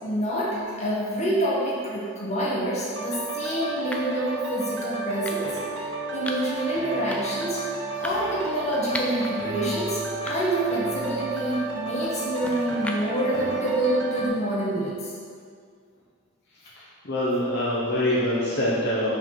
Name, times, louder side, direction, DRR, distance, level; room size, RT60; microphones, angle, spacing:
voice 1, 0.0-7.6 7.9-14.9, right 1 dB, 30° left, -7 dB, 1.6 m, -27 dB
sound 1, 2.6-2.8 3.9-4.2 5.2-5.7 6.3-6.6 7.1-7.4 8.0-9.3 9.7-9.8 10.3-10.7 11.1-13.3, left 1 dB, 5° left, 0.4 m, -38 dB
sound 2, 2.9-14.3, right 3 dB, 60° right, 1.0 m, -32 dB
voice 2, 17.1-19.2, left 1 dB, 50° left, -7 dB, 0.9 m, -24 dB
5.6 x 4.5 x 5.7 m, 2.2 s
head